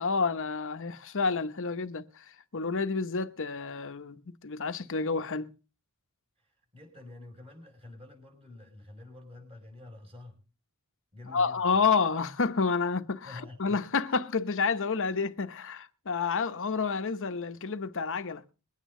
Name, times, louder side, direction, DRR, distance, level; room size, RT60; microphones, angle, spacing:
voice 1, 0.0-5.5 11.3-18.4, left 5 dB, 60° left, 0.9 m, -29 dB
voice 2, 6.4-10.4 11.1-11.6 13.2-13.8, left 2 dB, 25° right, 5.8 m, -48 dB
22.0 x 9.2 x 3.7 m
head